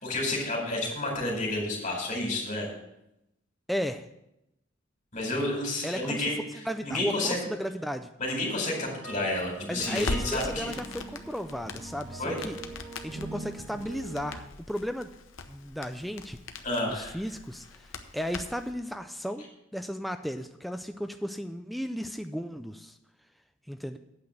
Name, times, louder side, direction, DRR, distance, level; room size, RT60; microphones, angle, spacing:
voice 1, 0.0-2.7 5.1-6.3 6.8-7.4 8.2-10.7 12.2-12.4 16.6-17.1, left 2 dB, 40° left, -2 dB, 4.4 m, -30 dB
voice 2, 3.7-4.1 5.8-6.2 6.6-8.1 9.7-12.6 13.0-15.1 15.5-16.4 16.9-19.4 19.7-23.0 23.7-24.0, equal, ahead, 7 dB, 0.3 m, -34 dB
sound 1, 8.8-14.4, right 2 dB, 85° right, 4.8 m, -43 dB
Crackle, 9.8-18.7, left 3 dB, 75° left, 0.9 m, -41 dB
8.7 x 6.0 x 7.7 m, 0.86 s
head